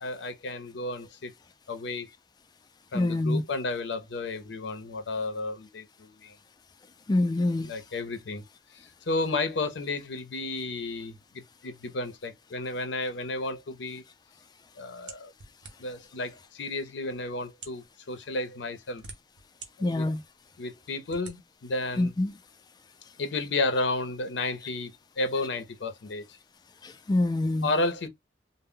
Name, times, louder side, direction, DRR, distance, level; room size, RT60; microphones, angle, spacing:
voice 1, 0.0-1.3 1.7-2.1 2.9-6.4 7.6-8.4 8.7-14.0 14.8-15.3 15.8-19.0 19.8-20.1 20.6-22.1 23.2-26.2 27.6-28.1, left 2 dB, 80° left, 0.6 m, -32 dB
voice 2, 2.9-3.4 7.1-7.7 19.8-20.2 22.0-22.3 26.8-27.7, left 2 dB, 25° left, 0.3 m, -25 dB
sound 1, 15.1-16.1 16.8-16.9 17.5-17.9 18.6-19.7 20.2-20.3 21.1-21.4, right 4 dB, 80° right, 0.8 m, -45 dB
2.1 x 2.0 x 3.6 m
head